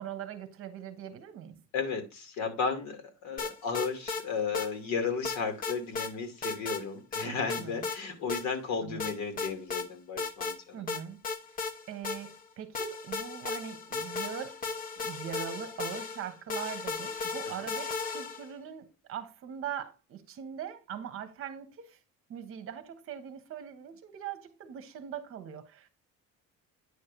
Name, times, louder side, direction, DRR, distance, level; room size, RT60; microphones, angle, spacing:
voice 1, 0.0-1.6 7.2-7.9 8.8-9.1 10.7-11.2 11.9-14.6 15.0-22.0 22.3-25.9, right 9 dB, 45° right, 1.2 m, -41 dB
voice 2, 1.7-10.8 17.6-17.7, left 5 dB, 65° left, 2.4 m, -34 dB
sound 1, 3.4-4.2 4.5-4.7 5.2-6.1 6.4-6.8 7.1-8.0 8.3-8.4 9.0-9.9 10.2-10.6 10.9-12.4 12.7-18.5, left 4 dB, 30° left, 0.9 m, -35 dB
9.6 x 3.2 x 6.7 m
cardioid pair, 175°, 30 cm